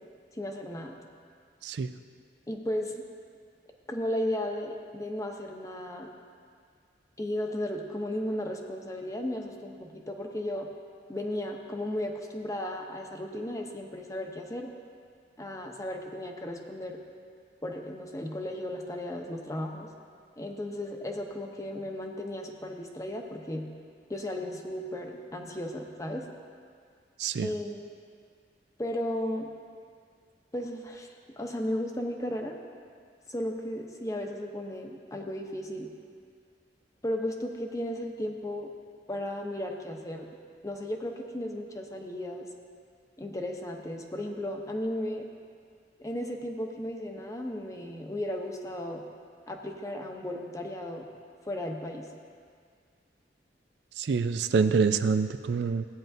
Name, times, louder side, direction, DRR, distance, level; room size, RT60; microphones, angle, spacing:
voice 1, 0.3-1.0 2.5-2.9 3.9-6.1 7.2-10.7 11.1-14.7 15.4-17.0 17.6-19.9 20.4-23.6 24.1-26.2 27.4-27.8 28.8-29.5 30.5-32.6 33.3-35.9 37.0-38.7 39.1-40.3 40.6-42.5 43.2-45.2 46.0-49.0 49.5-51.1 51.5-52.1, left 1 dB, 20° left, 2 dB, 0.8 m, -35 dB
voice 2, 54.0-55.9, right 5 dB, 70° right, 10 dB, 0.4 m, -26 dB
15.5 x 9.0 x 2.7 m, 2.1 s
head